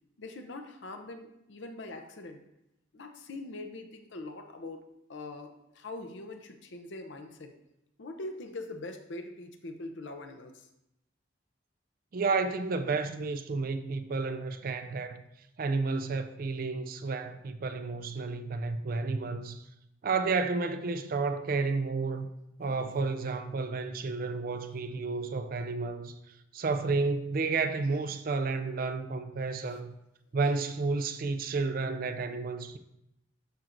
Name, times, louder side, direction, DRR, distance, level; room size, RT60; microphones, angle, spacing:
voice 1, 0.2-2.4 2.9-4.8 5.1-7.5 8.0-10.7 29.7-29.8, left 2 dB, 70° left, 0.7 m, -42 dB
voice 2, 12.1-15.2 15.6-19.6 20.0-22.3 22.6-26.1 26.5-29.9 30.3-32.8, right 4 dB, 50° right, 0.4 m, -31 dB
12.0 x 4.5 x 2.6 m
head